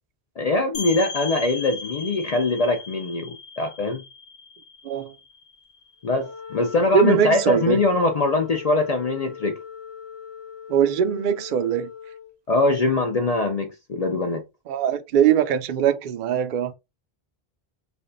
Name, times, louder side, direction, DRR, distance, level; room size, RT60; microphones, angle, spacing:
voice 1, 0.4-4.0 6.0-9.6 12.5-14.4, left 2 dB, 50° left, 0.5 m, -22 dB
sound 1, 0.7-6.2, left 4 dB, 85° left, 0.9 m, -37 dB
Wind instrument woodwind instrument, 6.0-12.3, left 7 dB, 85° right, 1.3 m, -39 dB
voice 2, 6.9-7.8 10.7-11.9 14.7-16.7, right 8 dB, 60° right, 0.6 m, -21 dB
3.4 x 2.2 x 3.8 m
omnidirectional pair, 1.1 m